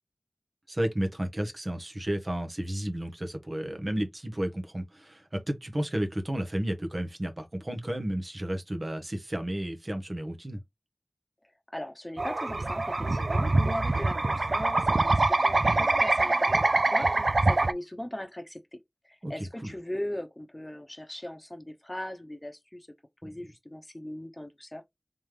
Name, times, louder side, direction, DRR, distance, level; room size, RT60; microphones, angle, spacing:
voice 1, 0.7-10.6 13.9-14.0 19.2-19.7 23.2-23.3, right 1 dB, 50° right, 1.0 m, -32 dB
voice 2, 11.7-16.6 16.9-18.8 19.0-22.9 23.2-24.8, left 1 dB, 25° left, 0.9 m, -39 dB
sound 1, 12.2-17.7, right 2 dB, 80° right, 0.3 m, -24 dB
3.7 x 3.1 x 3.3 m
wide cardioid pair, 40°, 0 cm